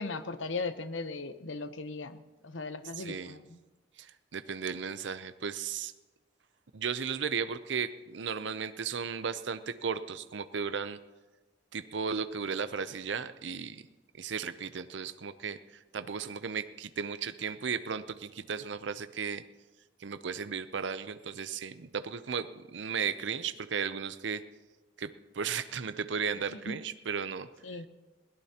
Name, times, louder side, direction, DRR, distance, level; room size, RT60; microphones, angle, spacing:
voice 1, 0.0-3.6 26.7-26.8 27.6-27.9, left 3 dB, 85° left, 11 dB, 0.8 m, -38 dB
voice 2, 3.0-3.4 4.0-5.9 6.7-11.0 11.7-13.8 14.2-15.6 15.9-19.4 20.0-24.4 25.0-27.5, right 6 dB, 70° right, 12 dB, 0.6 m, -35 dB
21.5 x 17.0 x 2.9 m, 1.2 s
head